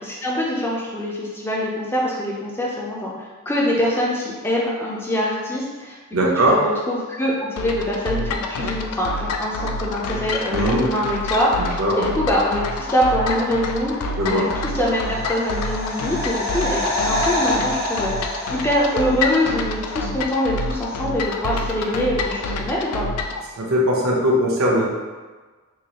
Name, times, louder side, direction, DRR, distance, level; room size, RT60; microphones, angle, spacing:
voice 1, 0.0-3.1 3.5-6.0 6.2-14.5 14.7-16.8 17.1-23.1, equal, 10° left, -4 dB, 0.5 m, -24 dB
voice 2, 6.1-6.5 10.5-10.9 11.8-12.1 14.2-14.4 23.6-24.8, equal, 65° right, -3 dB, 0.7 m, -19 dB
sound 1, 7.6-23.4, left 2 dB, 90° left, 0.3 m, -28 dB
sound 2, 14.7-19.5 19.8-19.9, left 1 dB, 50° left, 0.7 m, -27 dB
3.8 x 2.5 x 2.9 m, 1.4 s
head